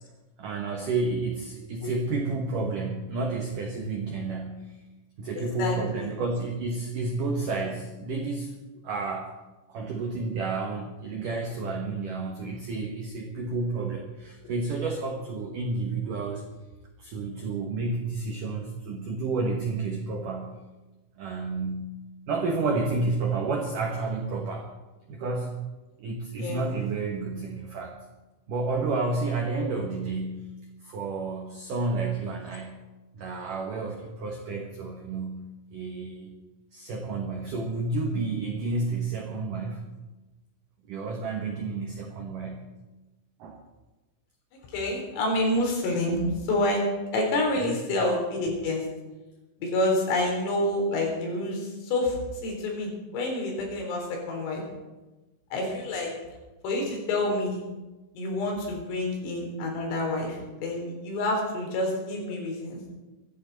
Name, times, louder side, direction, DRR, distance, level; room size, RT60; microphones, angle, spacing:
voice 1, 0.4-4.8 5.2-8.5 8.8-9.4 9.7-16.4 17.0-20.6 21.2-22.0 22.3-24.7 25.1-25.6 26.0-28.0 28.5-30.6 30.8-32.8 33.1-36.4 36.7-39.9 40.9-42.7 43.4-43.6 47.5-47.8, right 3 dB, 80° right, 2 dB, 1.9 m, -31 dB
voice 2, 5.4-6.1 26.4-26.7 44.7-46.8 47.1-48.8 49.6-54.6 55.5-56.1 56.6-57.6 58.2-62.8, left 1 dB, 80° left, 0 dB, 6.2 m, -28 dB
24.5 x 11.5 x 4.0 m, 1.1 s
omnidirectional pair, 5.8 m